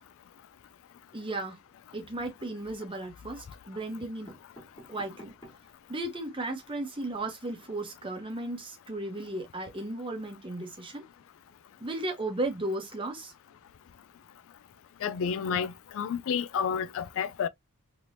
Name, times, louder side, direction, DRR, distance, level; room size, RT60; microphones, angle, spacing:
voice 1, 1.1-1.6 1.9-4.3 4.9-5.3 5.9-11.0 11.8-13.3, right 2 dB, 25° right, 0.9 m, -35 dB
sound 1, 2.3-2.9 3.6-3.7 4.0-5.8 6.3-6.4 6.6-6.7 7.0-7.2, equal, 20° left, 1.5 m, -52 dB
voice 2, 15.0-17.5, left 7 dB, 60° left, 0.3 m, -30 dB
3.3 x 3.0 x 2.5 m
head